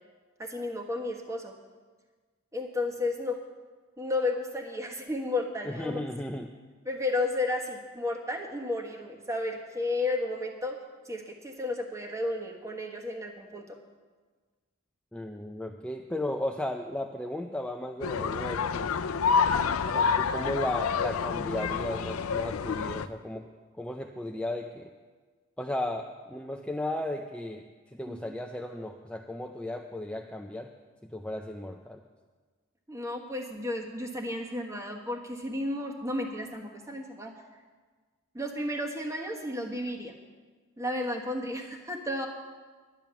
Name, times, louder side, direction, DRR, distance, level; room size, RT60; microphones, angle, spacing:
voice 1, 0.4-1.5 2.5-3.4 4.0-6.0 6.8-10.8 11.0-13.8 28.1-28.2 32.9-37.3 38.3-40.1 40.8-42.3, left 2 dB, 15° right, 2 dB, 1.4 m, -33 dB
voice 2, 5.7-6.5 15.1-18.9 19.8-23.5 23.8-24.9 25.6-30.7 31.0-32.0, left 1 dB, 5° left, 2 dB, 0.5 m, -35 dB
sound 1, 18.0-23.1, left 6 dB, 75° left, 0.5 m, -28 dB
10.5 x 10.5 x 6.9 m, 1.4 s
head